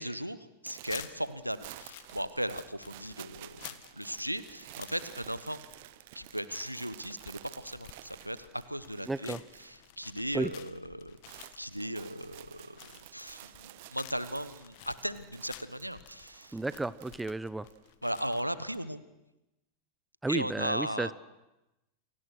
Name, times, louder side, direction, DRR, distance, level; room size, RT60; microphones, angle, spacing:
voice 1, 0.0-5.6 6.1-11.2 11.6-12.8 13.1-16.6 18.0-19.0 20.3-21.1, equal, 90° right, 14 dB, 1.2 m, -37 dB
sound 1, 0.6-9.9 10.2-10.6 10.9-17.9, right 17 dB, 50° right, 0.8 m, -52 dB
sound 2, 0.8-18.8, left 15 dB, 50° left, 1.5 m, -53 dB
voice 2, 9.1-9.4 10.3-10.5 16.5-17.7 20.2-21.1, right 2 dB, 5° right, 18 dB, 0.8 m, -33 dB
29.5 x 23.5 x 6.4 m, 0.98 s
figure-of-eight pair, 90°, 0 cm